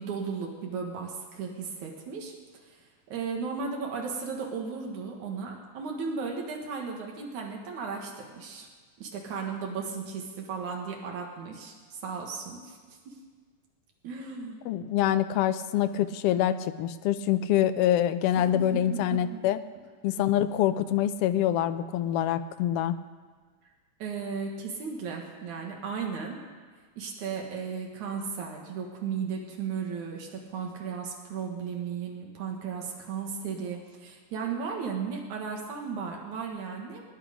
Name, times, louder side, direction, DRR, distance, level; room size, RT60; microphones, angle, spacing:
voice 1, 0.0-2.3 2.6-8.7 9.0-13.1 14.0-14.6 18.5-19.4 20.2-20.3 24.0-26.4 27.0-37.0, right 5 dB, 80° right, 0 dB, 3.1 m, -35 dB
voice 2, 14.7-19.6 20.0-23.0, left 11 dB, 75° left, 10 dB, 1.4 m, -25 dB
26.0 x 10.0 x 5.2 m, 1.5 s
omnidirectional pair, 3.3 m